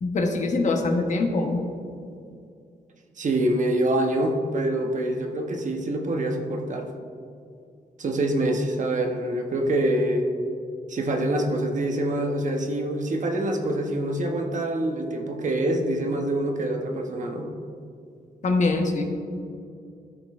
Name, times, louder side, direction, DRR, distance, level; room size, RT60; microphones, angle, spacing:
voice 1, 0.0-1.6 18.4-19.0, left 3 dB, 50° left, 3 dB, 1.0 m, -23 dB
voice 2, 3.2-6.9 8.0-10.3 10.9-17.5, right 1 dB, 50° right, 3 dB, 0.9 m, -25 dB
13.0 x 6.1 x 2.4 m, 2.4 s
wide cardioid pair, 125°, 16 cm